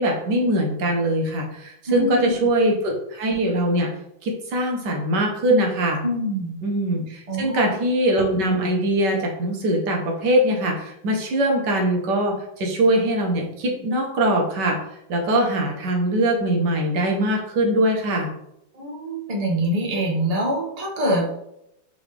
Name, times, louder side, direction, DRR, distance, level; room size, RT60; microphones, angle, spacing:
voice 1, 0.0-3.9 4.2-6.0 6.6-14.8 15.1-18.3, right 1 dB, 65° right, 0 dB, 1.4 m, -22 dB
voice 2, 1.9-2.3 6.0-6.6 7.3-7.6 18.7-21.3, right 1 dB, 45° right, -2 dB, 0.5 m, -24 dB
3.9 x 3.8 x 3.2 m, 0.80 s
omnidirectional pair, 2.2 m